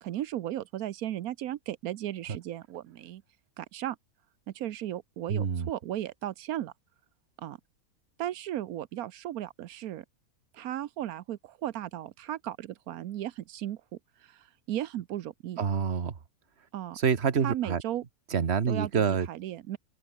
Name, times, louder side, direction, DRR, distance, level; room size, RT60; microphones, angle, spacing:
voice 1, 0.0-3.2 3.6-4.0 4.5-6.7 7.4-7.6 8.2-10.0 10.5-15.6 16.7-17.0 17.4-18.0 18.7-18.9 19.3-19.8, right 12 dB, 85° right, 1.2 m, -36 dB
voice 2, 5.3-5.7 15.6-16.1 16.9-17.8 18.3-19.3, right 6 dB, 50° right, 1.6 m, -27 dB
omnidirectional pair, 1.5 m